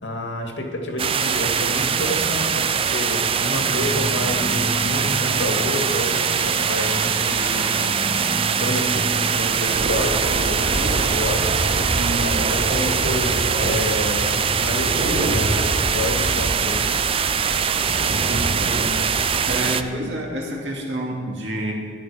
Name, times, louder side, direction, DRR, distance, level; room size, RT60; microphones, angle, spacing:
voice 1, 0.0-8.2 8.6-11.6 12.2-17.0, left 1 dB, 85° left, 2 dB, 2.0 m, -29 dB
sound 1, 1.0-19.8, right 7 dB, 30° right, 0.4 m, -22 dB
sound 2, 3.5-14.3, equal, 15° right, 1.0 m, -33 dB
voice 2, 3.7-4.1 11.9-12.4 18.0-18.9 19.5-21.7, right 1 dB, 75° right, -1 dB, 2.3 m, -29 dB
sound 3, 9.7-19.7, right 1 dB, 60° right, 1.4 m, -27 dB
14.0 x 10.5 x 5.1 m, 2.2 s
head